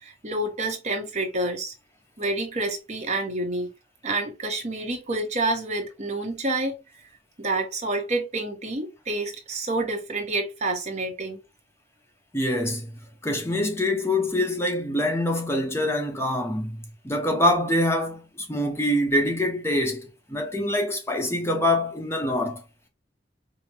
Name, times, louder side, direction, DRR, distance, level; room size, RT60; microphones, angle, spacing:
voice 1, 0.0-1.7 2.2-3.7 4.0-6.8 7.4-11.4, right 2 dB, 40° right, 1.0 m, -28 dB
voice 2, 12.3-12.9 13.2-22.6, left 1 dB, 15° left, 0.7 m, -25 dB
5.0 x 2.0 x 2.9 m
head